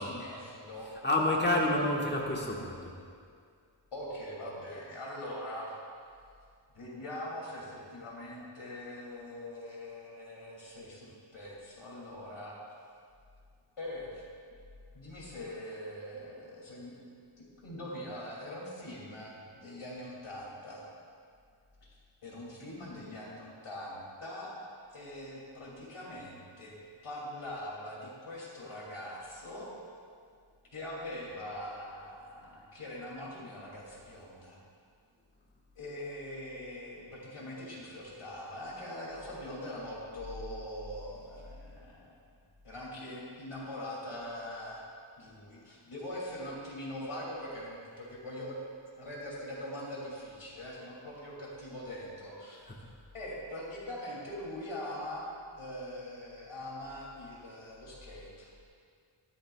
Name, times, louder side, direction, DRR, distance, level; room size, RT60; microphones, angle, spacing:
voice 1, 0.0-0.9 3.9-5.7 6.7-12.5 13.8-14.2 14.9-17.0 17.6-20.9 21.9-22.0 22.2-24.5 24.9-26.7 27.0-29.7 30.7-34.6 35.8-42.2 42.6-44.8 45.2-48.6 49.0-52.6 53.1-55.3 55.5-58.5, left 1 dB, 85° left, -5 dB, 2.7 m, -42 dB
voice 2, 1.0-2.9 52.7-52.8, left 1 dB, 20° left, -2 dB, 1.3 m, -29 dB
13.0 x 12.5 x 2.3 m, 2.2 s
wide cardioid pair, 50°, 49 cm